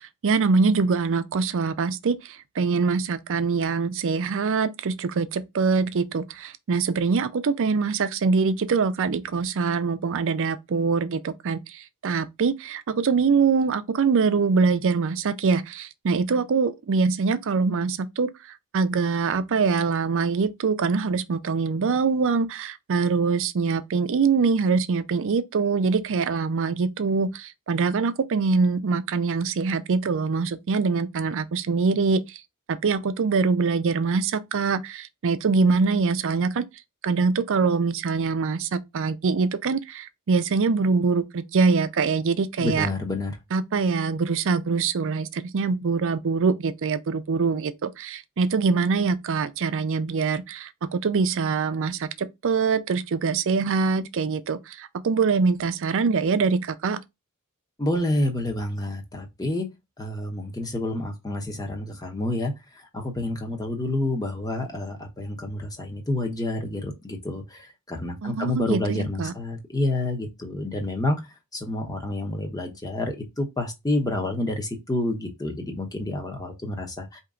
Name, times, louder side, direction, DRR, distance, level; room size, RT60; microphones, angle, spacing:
voice 1, 0.0-18.3 18.7-32.4 32.7-36.6 37.0-42.9 43.5-57.0 68.2-69.3, right 4 dB, 60° right, 0.5 m, -24 dB
voice 2, 42.6-43.3 57.8-59.7 60.0-62.5 62.9-71.2 71.5-77.2, left 1 dB, 15° left, 1.0 m, -28 dB
4.4 x 2.9 x 3.7 m
head